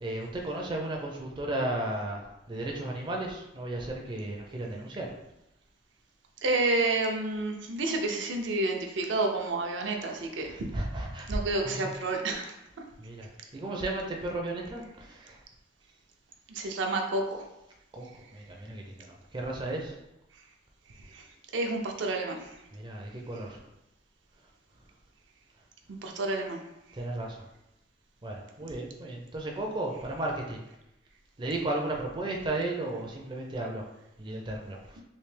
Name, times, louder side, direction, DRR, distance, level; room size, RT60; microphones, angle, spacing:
voice 1, 0.0-5.1 10.4-11.9 13.0-15.4 17.9-18.0 18.3-19.9 22.7-23.6 26.9-27.4 28.2-30.6 31.4-33.8 34.2-34.8, right 2 dB, 25° right, 0 dB, 0.4 m, -34 dB
voice 2, 6.4-10.7 11.3-12.5 16.5-17.4 21.1-21.3 21.5-22.5 26.0-26.6 35.0-35.1, right 2 dB, 75° right, 2 dB, 0.5 m, -30 dB
3.2 x 2.7 x 3.2 m, 0.89 s
head